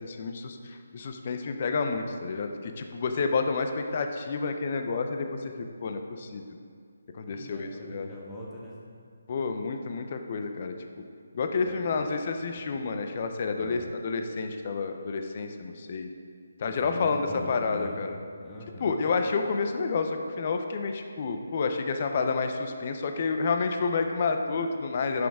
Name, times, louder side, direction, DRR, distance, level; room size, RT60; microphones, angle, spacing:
voice 1, 0.0-6.5 7.1-8.1 9.3-10.7 11.3-16.1 16.6-18.2 18.8-25.3, left 4 dB, 40° left, 6 dB, 0.6 m, -29 dB
voice 2, 7.3-8.8 11.6-12.0 12.5-12.6 13.6-13.8 16.7-18.0 18.4-19.1, left 1 dB, 15° left, -5 dB, 1.4 m, -42 dB
10.5 x 6.3 x 3.6 m, 2.2 s
hypercardioid pair, 160°, 0 cm